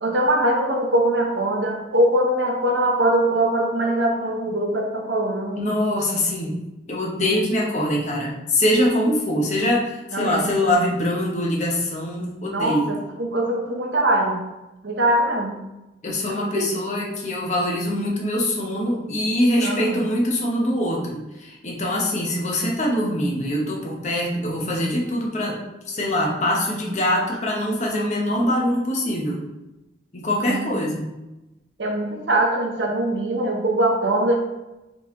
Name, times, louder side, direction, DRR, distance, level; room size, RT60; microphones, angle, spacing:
voice 1, 0.0-5.6 10.1-10.4 12.5-14.4 14.8-15.6 16.3-16.7 19.6-20.0 30.4-30.7 31.8-34.4, right 1 dB, 80° right, 1 dB, 0.8 m, -22 dB
voice 2, 5.6-12.9 16.0-25.6 25.9-29.4 30.1-31.1, left 1 dB, 40° left, -2 dB, 0.8 m, -23 dB
3.9 x 3.1 x 3.6 m, 0.99 s
head